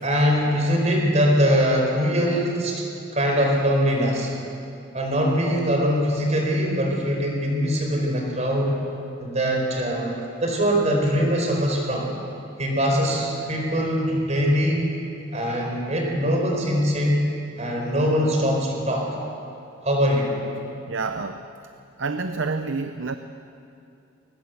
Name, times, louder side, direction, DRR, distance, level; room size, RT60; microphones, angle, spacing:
voice 1, 0.0-2.8 3.1-4.3 4.9-8.8 9.2-10.1 10.4-12.1 12.6-14.9 15.3-17.3 17.6-19.1 19.8-20.3, equal, 35° right, 1 dB, 4.6 m, -22 dB
voice 2, 20.9-21.5 22.0-23.2, right 4 dB, 70° right, 9 dB, 0.8 m, -28 dB
22.5 x 19.5 x 8.0 m, 2.7 s
head